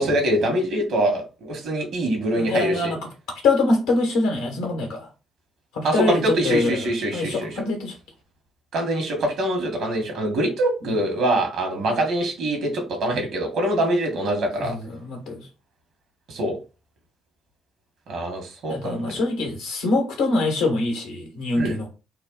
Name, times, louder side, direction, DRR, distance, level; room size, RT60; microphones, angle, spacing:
voice 1, 0.0-2.9 5.8-7.5 8.7-14.7 16.3-16.6 18.1-19.1 21.5-21.7, right 1 dB, 70° right, 3 dB, 1.6 m, -24 dB
voice 2, 2.3-3.0 3.4-5.1 5.7-6.9 7.1-7.9 10.8-10.9 14.6-15.5 18.7-21.9, left 3 dB, 80° left, 1 dB, 1.7 m, -24 dB
4.0 x 2.4 x 4.0 m, 0.31 s
hypercardioid pair, 45°, 0 cm